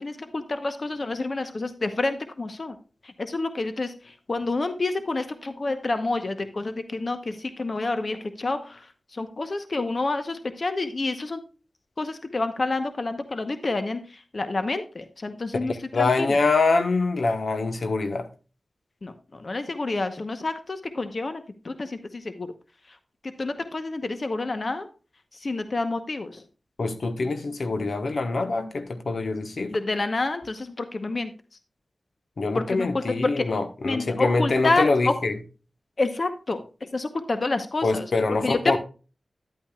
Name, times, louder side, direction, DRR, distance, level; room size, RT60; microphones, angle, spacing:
voice 1, 0.0-2.8 3.2-8.8 9.1-11.4 12.0-14.1 14.3-16.4 19.0-22.5 23.4-24.9 25.4-26.4 29.7-31.3 32.5-33.5 33.8-35.1 36.0-36.6 36.9-38.1 38.4-38.8, left 3 dB, 55° left, 0.9 m, -28 dB
voice 2, 15.6-18.3 26.8-29.8 32.4-35.3 37.8-38.8, left 3 dB, 75° left, 1.2 m, -24 dB
11.0 x 8.8 x 2.3 m
cardioid pair, 55°, 0 cm